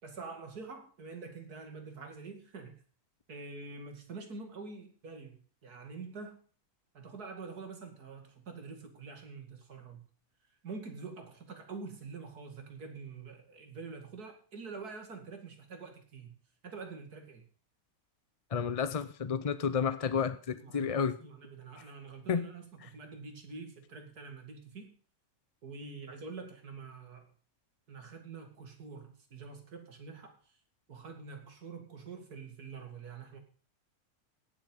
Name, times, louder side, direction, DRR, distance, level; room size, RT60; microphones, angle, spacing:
voice 1, 0.0-2.8 3.3-6.4 6.9-10.0 10.6-16.3 16.6-17.4 20.5-24.9 25.6-27.3 27.9-30.5 30.9-33.4, right 4 dB, 90° right, 5 dB, 2.9 m, -46 dB
voice 2, 18.5-21.2 22.3-22.5, left 6 dB, 50° left, 13 dB, 0.4 m, -31 dB
17.0 x 7.9 x 5.4 m, 0.40 s
omnidirectional pair, 1.6 m